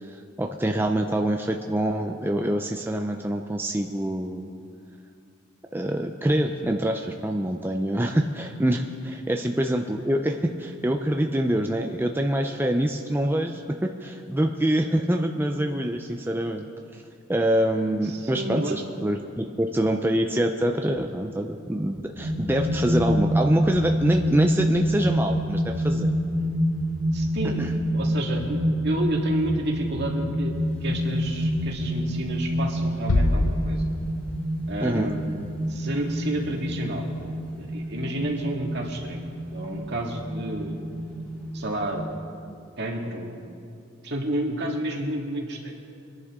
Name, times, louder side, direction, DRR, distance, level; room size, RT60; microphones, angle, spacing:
voice 1, 0.1-4.5 5.7-16.6 16.9-17.0 17.3-26.1 27.6-27.7 34.8-35.1, right 1 dB, 10° right, 3 dB, 0.5 m, -25 dB
voice 2, 18.0-18.8 19.4-19.5 27.1-33.8 34.7-35.3 35.7-37.1 37.6-40.8 41.5-42.2 42.8-43.4 44.0-45.7, right 1 dB, 55° right, 0 dB, 1.9 m, -31 dB
sound 1, 22.2-42.0, equal, 5° left, 1.8 m, -27 dB
sound 2, 33.1-34.7, left 2 dB, 70° left, 0.7 m, -25 dB
23.5 x 11.0 x 3.7 m, 2.5 s
head